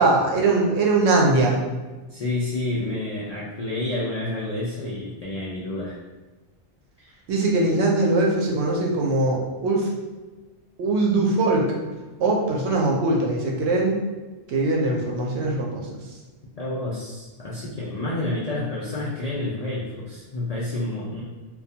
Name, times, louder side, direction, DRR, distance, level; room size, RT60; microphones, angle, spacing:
voice 1, 0.0-1.6 7.3-9.9 10.8-11.7 12.2-14.0 14.5-15.9, right 2 dB, 75° right, -1 dB, 0.8 m, -21 dB
voice 2, 2.1-6.0 7.0-7.1 16.6-21.2, left 2 dB, 65° left, -7 dB, 0.4 m, -29 dB
2.3 x 2.2 x 2.7 m, 1.2 s
omnidirectional pair, 1.2 m